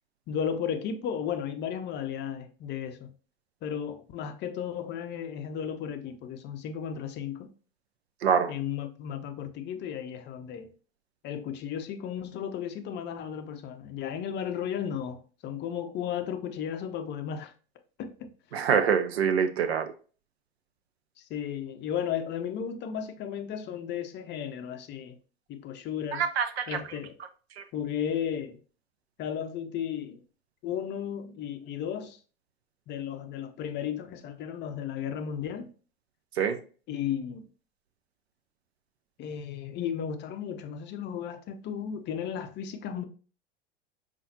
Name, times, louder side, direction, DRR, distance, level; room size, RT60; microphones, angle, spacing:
voice 1, 0.3-3.1 3.6-7.5 8.5-10.7 11.2-17.5 18.0-18.3 21.3-25.2 25.5-26.2 26.7-27.1 27.7-28.6 29.2-30.2 30.6-32.2 32.9-35.7 36.9-37.4 39.2-43.0, left 8 dB, 35° left, 0.5 m, -34 dB
voice 2, 8.2-8.5 18.5-19.9 26.1-26.8 27.6-27.7 36.3-36.6, right 7 dB, 75° right, 0.6 m, -25 dB
5.5 x 2.5 x 2.7 m
hypercardioid pair, 85°, 32 cm